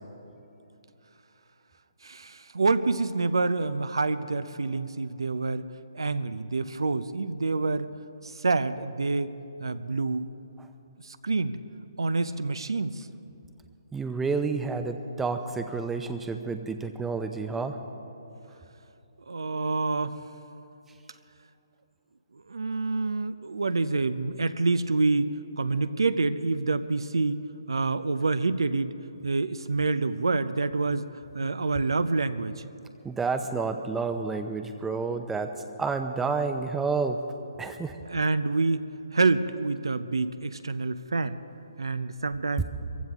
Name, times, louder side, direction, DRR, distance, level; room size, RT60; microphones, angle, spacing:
voice 1, 2.0-5.7 5.9-7.9 8.2-9.3 9.6-10.3 11.0-11.5 12.0-13.1 19.3-20.2 22.5-28.9 29.2-31.1 31.3-32.6 38.1-41.4 41.8-42.6, right 3 dB, 75° right, 12 dB, 0.6 m, -27 dB
voice 2, 13.9-17.8 33.0-37.2 37.6-38.0, right 4 dB, 5° right, 6 dB, 0.7 m, -30 dB
23.0 x 15.5 x 3.6 m, 2.9 s
figure-of-eight pair, 140°, 2 cm